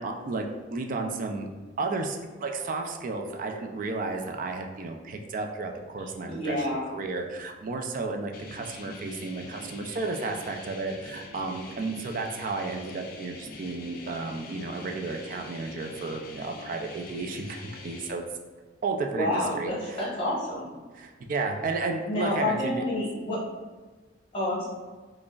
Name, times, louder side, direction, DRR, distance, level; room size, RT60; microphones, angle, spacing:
voice 1, 0.0-1.5 1.8-6.7 6.9-18.2 18.8-20.0 20.9-22.8, right 3 dB, 45° right, 3 dB, 0.4 m, -33 dB
voice 2, 6.2-6.8 19.1-20.7 22.1-23.4 24.3-24.7, left 1 dB, 30° left, -6 dB, 1.1 m, -29 dB
sound 1, 8.3-18.1, left 3 dB, 50° left, 0.4 m, -44 dB
4.9 x 2.0 x 2.3 m, 1.3 s
head